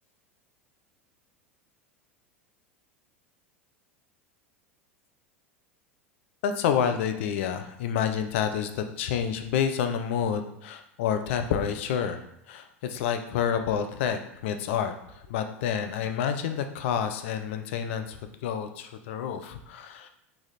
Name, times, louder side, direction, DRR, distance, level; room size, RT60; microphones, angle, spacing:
voice 1, 6.4-12.2 12.5-20.1, left 8 dB, 65° left, 7 dB, 0.4 m, -29 dB
3.2 x 2.3 x 4.2 m, 0.74 s
hypercardioid pair, 80°, 7 cm